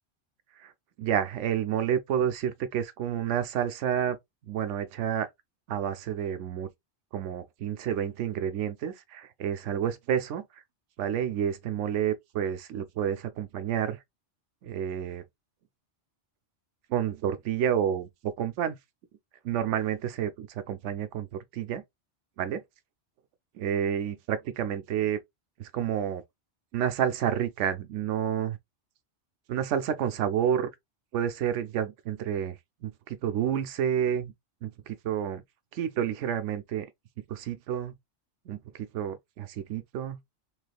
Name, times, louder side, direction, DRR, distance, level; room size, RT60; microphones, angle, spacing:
voice 1, 1.0-4.2 4.5-5.3 5.7-6.7 7.1-10.4 11.0-14.0 14.6-15.2 16.9-18.8 19.4-21.8 22.4-22.6 23.6-25.2 25.6-26.2 26.7-28.6 29.5-30.7 31.1-34.3 34.6-35.4 35.7-36.9 37.3-37.9 38.5-38.6 38.9-40.2, right 9 dB, 85° right, 0.9 m, -29 dB
3.3 x 3.1 x 2.3 m
omnidirectional pair, 1.2 m